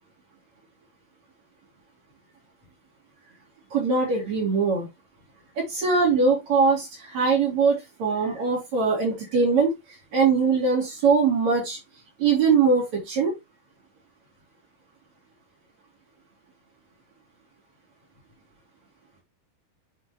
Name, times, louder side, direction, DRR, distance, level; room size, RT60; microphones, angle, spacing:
voice 1, 3.7-4.9 5.6-9.7 10.1-11.8 12.2-13.3, right 4 dB, 55° right, -3 dB, 4.6 m, -22 dB
9.2 x 4.7 x 3.1 m, 0.20 s
omnidirectional pair, 3.8 m